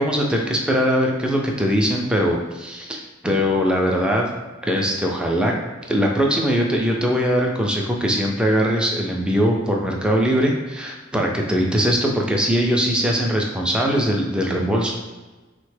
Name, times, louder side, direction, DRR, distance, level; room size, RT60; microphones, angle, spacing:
voice 1, 0.0-4.3 4.6-5.5 5.9-14.9, equal, 5° right, 0 dB, 0.4 m, -21 dB
3.2 x 2.1 x 3.2 m, 1.2 s
head